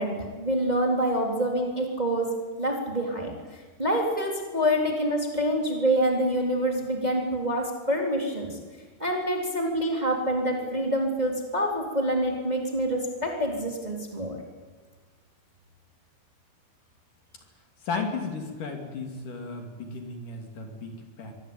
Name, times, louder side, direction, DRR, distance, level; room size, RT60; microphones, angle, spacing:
voice 1, 0.0-2.3 2.6-8.6 9.0-14.4, equal, 10° right, 1 dB, 3.4 m, -26 dB
voice 2, 17.8-21.3, left 4 dB, 55° left, 4 dB, 4.1 m, -34 dB
24.5 x 20.5 x 9.0 m, 1.4 s
omnidirectional pair, 4.7 m